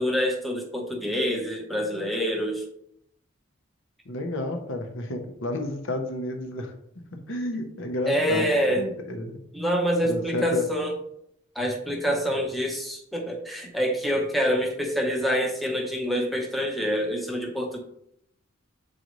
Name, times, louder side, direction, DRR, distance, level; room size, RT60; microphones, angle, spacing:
voice 1, 0.0-2.6 8.1-8.8 9.5-10.9 11.6-17.8, equal, ahead, -1 dB, 0.8 m, -26 dB
voice 2, 4.1-6.7 7.1-9.4 10.0-10.7, left 2 dB, 60° left, 4 dB, 0.9 m, -31 dB
7.6 x 4.0 x 3.1 m, 0.74 s
head